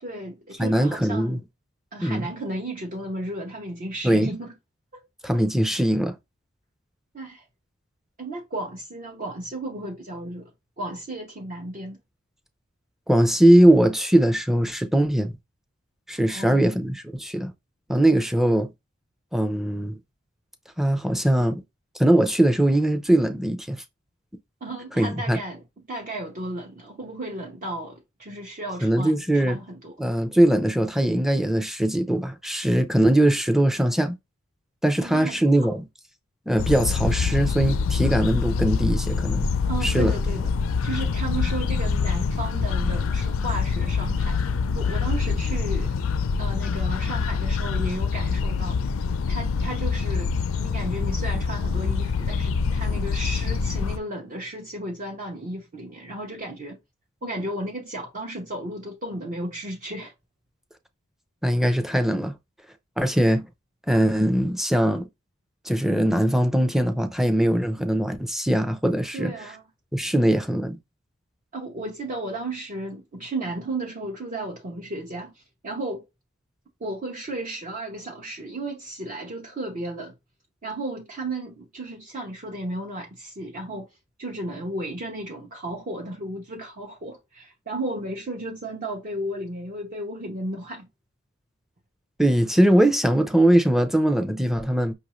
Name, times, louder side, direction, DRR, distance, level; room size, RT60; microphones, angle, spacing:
voice 1, 0.0-1.4 1.9-4.5 4.9-5.0 7.1-7.4 8.2-10.5 10.8-12.0 16.3-16.8 24.6-29.9 35.0-35.7 39.7-40.5 40.8-44.4 44.7-46.0 46.4-48.8 49.3-56.8 57.2-60.1 69.1-69.6 71.5-76.0 76.8-80.1 80.6-83.9 84.2-90.9, right 1 dB, 40° right, 0.8 m, -34 dB
voice 2, 0.6-1.4 2.0-2.3 4.0-4.3 5.2-6.1 13.1-15.3 16.1-17.5 17.9-18.7 19.3-20.0 20.8-21.6 22.0-23.8 25.0-25.4 28.8-29.6 30.0-34.2 34.8-35.8 36.5-39.5 39.8-40.1 61.4-62.3 63.0-63.4 63.9-65.1 65.7-69.3 69.9-70.8 92.2-94.9, right 1 dB, ahead, 0.5 m, -21 dB
sound 1, 36.6-54.0, left 5 dB, 90° left, 0.4 m, -25 dB
5.5 x 2.6 x 3.0 m
head